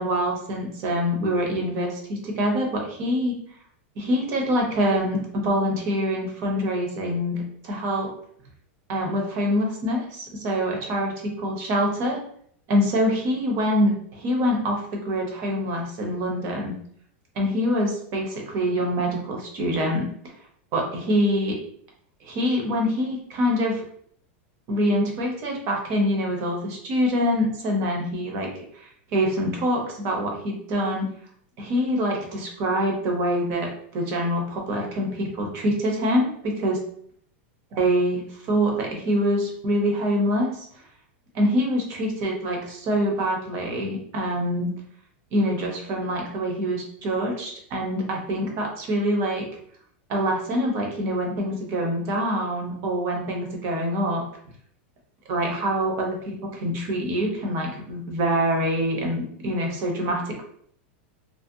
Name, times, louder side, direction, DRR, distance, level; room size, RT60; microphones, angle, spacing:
voice 1, 0.0-3.4 4.0-8.1 8.9-12.2 12.7-16.8 17.4-20.1 20.7-21.6 22.2-23.8 24.7-28.5 28.7-31.1 31.6-36.8 37.7-40.6 41.3-44.7 45.3-49.5 50.1-54.2 55.3-60.4, equal, 35° right, 1 dB, 0.6 m, -25 dB
2.5 x 2.0 x 2.6 m, 0.64 s
supercardioid pair, 165°, 7 cm